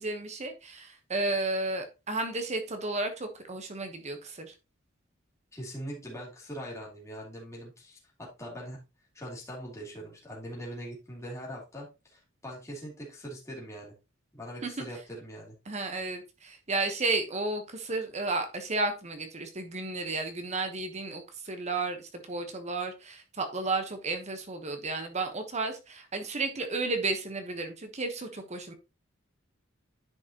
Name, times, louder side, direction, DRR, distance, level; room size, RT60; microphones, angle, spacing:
voice 1, 0.0-4.5 14.6-14.9 15.7-28.7, right 3 dB, 35° right, 7 dB, 1.1 m, -33 dB
voice 2, 5.5-8.8 9.1-13.9 14.3-15.5, equal, 15° left, -4 dB, 3.0 m, -42 dB
9.8 x 5.4 x 2.9 m, 0.27 s
head